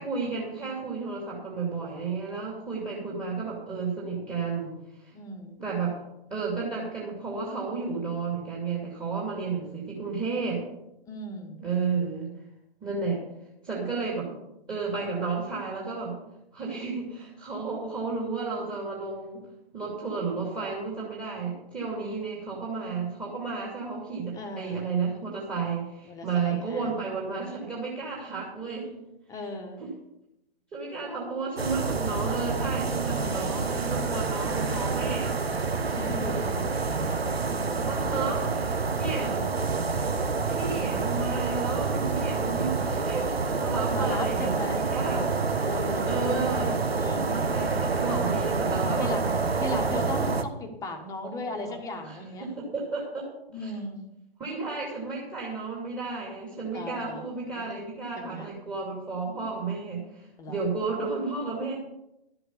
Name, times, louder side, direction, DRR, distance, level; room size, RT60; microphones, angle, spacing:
voice 1, 0.0-5.1 5.6-6.0 6.3-10.6 11.6-12.3 12.8-13.2 13.6-14.3 14.7-16.2 16.5-19.4 19.7-28.9 29.8-29.9 30.7-35.4 37.8-39.4 40.5-45.3 46.1-46.8 47.3-49.1 51.7-51.8 52.0-53.3 53.6-53.7 54.4-61.8, right 4 dB, 15° right, -4 dB, 2.7 m, -32 dB
voice 2, 2.8-3.1 5.1-5.6 11.1-11.6 24.3-24.9 26.1-26.9 29.3-29.8 33.1-33.5 35.8-36.7 37.1-37.2 38.1-38.2 39.2-39.5 40.7-41.0 43.9-46.4 46.9-47.4 49.0-49.3 49.6-52.5 53.5-54.0 56.7-57.2 57.5-57.7 58.2-58.5 60.4-60.6, left 2 dB, 10° left, 3 dB, 1.5 m, -37 dB
sound 1, 31.6-50.4, right 4 dB, 75° right, 1.2 m, -28 dB
12.5 x 7.9 x 6.9 m, 0.84 s
figure-of-eight pair, 125°, 31 cm